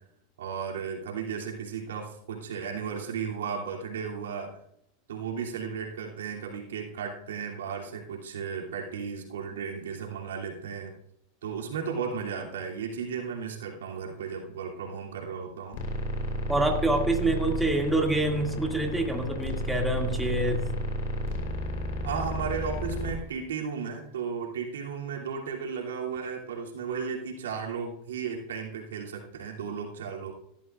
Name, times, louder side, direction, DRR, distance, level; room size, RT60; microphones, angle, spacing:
voice 1, 0.4-4.5 5.1-10.9 11.4-15.8 22.0-30.3, right 6 dB, 90° right, 0 dB, 2.8 m, -34 dB
sound 1, 15.7-23.1, left 1 dB, 60° left, 3.8 m, -32 dB
voice 2, 16.5-20.6, right 2 dB, 5° right, 1 dB, 2.2 m, -26 dB
17.0 x 13.0 x 2.5 m, 0.76 s
hypercardioid pair, 110°, 0 cm